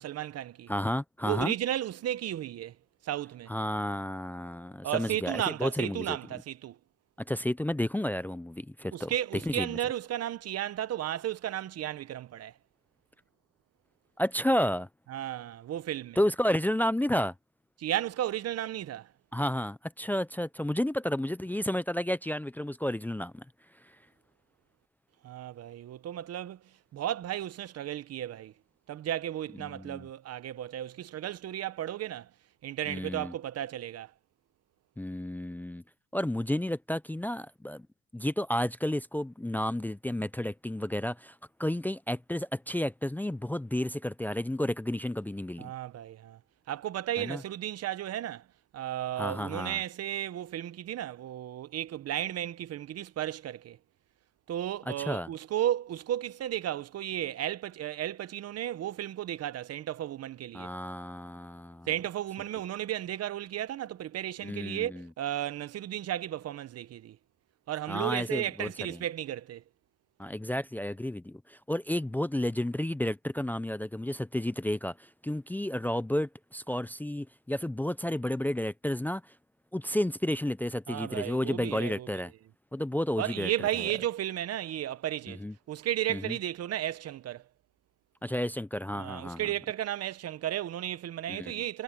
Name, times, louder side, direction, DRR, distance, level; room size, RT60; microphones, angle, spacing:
voice 1, 0.0-0.7 1.2-2.7 3.0-3.5 4.8-6.8 8.9-12.5 15.1-16.2 17.8-19.1 25.2-26.6 26.9-28.5 28.9-32.3 32.6-34.1 45.6-46.4 46.7-48.4 48.7-53.8 54.5-60.7 61.9-67.2 67.7-69.6 80.9-82.2 83.2-87.4 88.9-91.8, right 12 dB, 55° right, 0.9 m, -34 dB
voice 2, 0.7-1.5 3.5-6.2 7.3-9.1 9.4-9.8 14.2-14.9 16.2-17.3 19.3-23.4 29.6-30.1 32.9-33.3 35.0-35.8 36.1-37.8 38.1-45.7 47.2-47.4 49.2-49.8 54.9-55.3 60.5-61.9 64.4-65.1 67.9-69.0 70.2-79.2 79.7-82.3 82.7-83.9 85.3-85.5 86.1-86.4 88.2-89.4 91.3-91.5, left 1 dB, 5° left, 0.5 m, -31 dB
cardioid pair, 105°, 29 cm